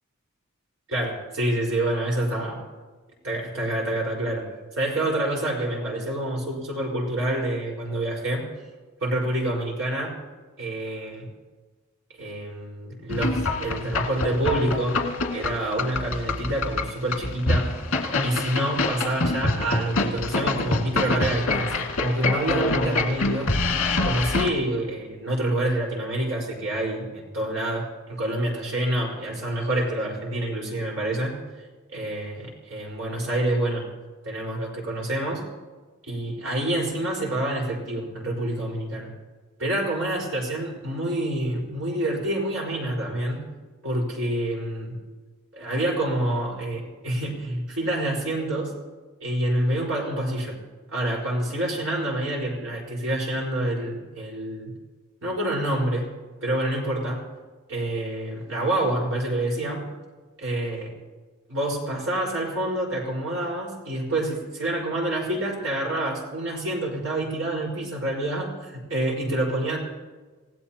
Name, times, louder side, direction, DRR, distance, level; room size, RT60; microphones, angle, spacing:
voice 1, 0.9-2.6 3.2-4.5 4.7-8.5 9.0-10.2 10.6-11.3 12.2-15.0 15.3-17.7 18.2-23.5 24.0-31.4 31.9-33.8 34.2-35.4 36.1-39.1 39.6-43.5 43.8-45.0 45.5-48.7 49.2-50.6 50.9-54.7 55.2-56.1 56.4-57.2 57.7-59.8 60.4-60.9 61.5-69.8, right 1 dB, 70° right, -2 dB, 4.9 m, -27 dB
sound 1, 13.1-24.5, left 2 dB, 75° left, 2.1 m, -26 dB
27.5 x 16.5 x 3.0 m, 1.4 s
head